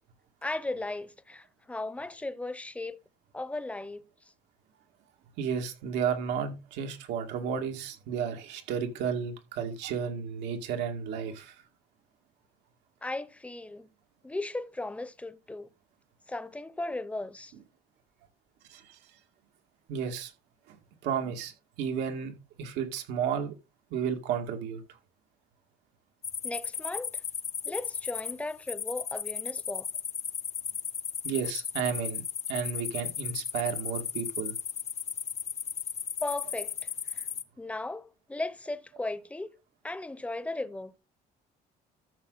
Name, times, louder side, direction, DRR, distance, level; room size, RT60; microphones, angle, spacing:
voice 1, 0.4-3.0 3.3-4.0 13.0-13.9 14.2-15.7 16.3-17.5 26.4-27.2 27.6-29.9 36.2-37.3 37.6-39.5 39.8-41.0, left 2 dB, 5° left, 0.8 m, -36 dB
voice 2, 5.4-11.6 18.7-19.0 19.9-20.3 20.7-20.8 21.0-21.5 21.8-22.3 22.6-23.5 23.9-24.8 31.2-32.2 32.5-34.5, right 7 dB, 90° right, 2.3 m, -32 dB
sound 1, 26.2-37.4, left 7 dB, 40° left, 0.9 m, -35 dB
13.5 x 6.3 x 4.1 m
cardioid pair, 110°, 17 cm